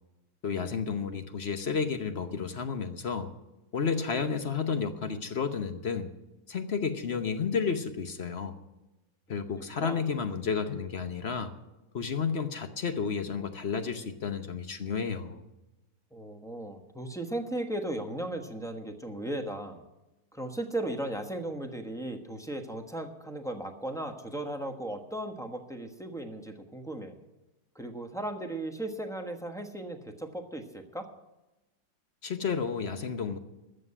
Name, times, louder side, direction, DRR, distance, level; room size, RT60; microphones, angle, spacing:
voice 1, 0.4-3.3 3.7-6.1 6.5-8.6 9.3-11.5 11.9-15.4 32.2-33.4, left 5 dB, 45° left, 8 dB, 0.9 m, -31 dB
voice 2, 16.1-19.8 20.3-27.2 27.7-31.1, right 1 dB, ahead, 5 dB, 0.9 m, -36 dB
13.5 x 7.7 x 9.8 m, 1.0 s
omnidirectional pair, 2.0 m